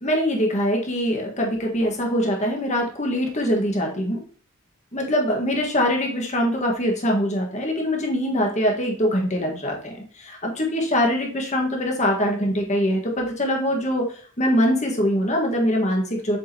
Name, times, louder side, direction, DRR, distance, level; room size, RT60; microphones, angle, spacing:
voice 1, 0.0-4.2 4.9-9.8 10.2-14.1 14.4-16.4, equal, 35° left, 0 dB, 1.5 m, -23 dB
7.5 x 4.8 x 2.9 m, 0.43 s
head